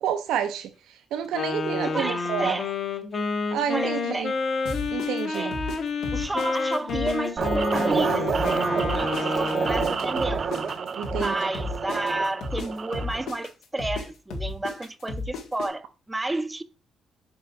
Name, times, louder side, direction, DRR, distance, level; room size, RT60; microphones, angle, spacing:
voice 1, 0.0-2.6 3.5-4.3 4.9-5.6 11.0-11.3, right 9 dB, 85° right, 0.6 m, -29 dB
Wind instrument woodwind instrument, 1.3-9.9, left 4 dB, 50° left, 1.2 m, -29 dB
voice 2, 1.8-2.7 3.7-4.3 5.3-5.6 6.1-8.6 8.9-10.5 11.1-16.6, right 2 dB, 15° right, 0.6 m, -31 dB
sound 1, 4.7-7.2 7.4-11.3 11.5-15.7, left 3 dB, 85° left, 1.7 m, -33 dB
sound 2, 7.4-13.3, right 5 dB, 45° right, 0.8 m, -28 dB
4.8 x 4.3 x 5.3 m
cardioid pair, 90°, 0 cm